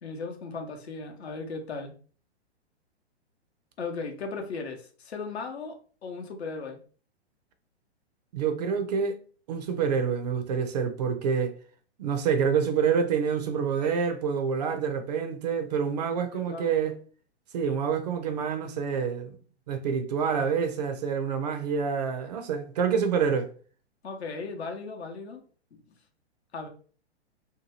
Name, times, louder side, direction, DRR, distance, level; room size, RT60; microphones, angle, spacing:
voice 1, 0.0-1.9 3.8-6.8 16.3-16.8 24.0-25.4 25.7-25.8 26.5-26.7, left 4 dB, 70° left, 0.8 m, -37 dB
voice 2, 8.3-9.2 9.5-11.6 12.0-17.0 17.5-19.3 19.7-23.5, right 6 dB, 40° right, 0.4 m, -27 dB
2.7 x 2.2 x 3.0 m
figure-of-eight pair, 115°, 34 cm